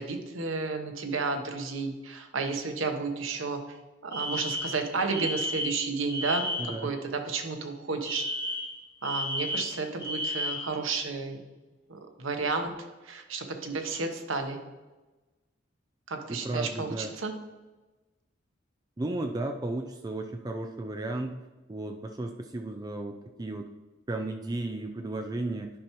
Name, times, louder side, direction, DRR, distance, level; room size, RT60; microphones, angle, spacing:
voice 1, 0.0-3.8 4.0-8.2 9.0-11.4 11.9-12.7 13.0-14.6 16.1-17.3, right 4 dB, 85° right, 5 dB, 1.0 m, -32 dB
Alarm, 4.1-6.8 8.0-10.8, equal, 20° left, 1.8 m, -33 dB
voice 2, 6.6-6.9 16.3-17.1 19.0-21.4 21.7-23.7 24.1-25.7, right 2 dB, 20° right, 5 dB, 0.4 m, -34 dB
10.5 x 5.7 x 3.0 m, 1.2 s
head